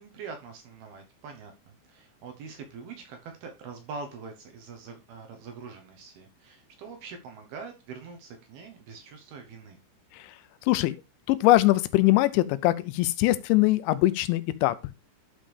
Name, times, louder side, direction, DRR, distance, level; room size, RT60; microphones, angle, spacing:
voice 1, 0.0-9.8, right 5 dB, 70° right, 2.6 m, -43 dB
voice 2, 11.3-14.8, left 17 dB, 85° left, 2.8 m, -22 dB
12.5 x 5.2 x 3.4 m
omnidirectional pair, 5.4 m